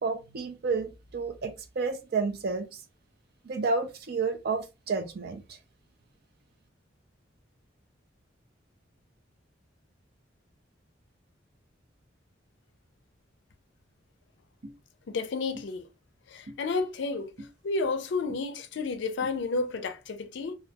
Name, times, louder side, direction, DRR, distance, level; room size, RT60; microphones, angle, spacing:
voice 1, 0.0-2.8 3.4-5.6, right 4 dB, 55° right, 0.4 m, -31 dB
sound 1, 14.6-14.8 15.5-15.7 16.5-16.6 17.4-17.5 18.3-18.4 19.2-19.4, right 1 dB, 85° right, 0.8 m, -44 dB
voice 2, 15.1-15.9 16.3-17.3 17.6-20.5, left 3 dB, 65° left, 0.4 m, -31 dB
2.3 x 2.2 x 2.7 m
head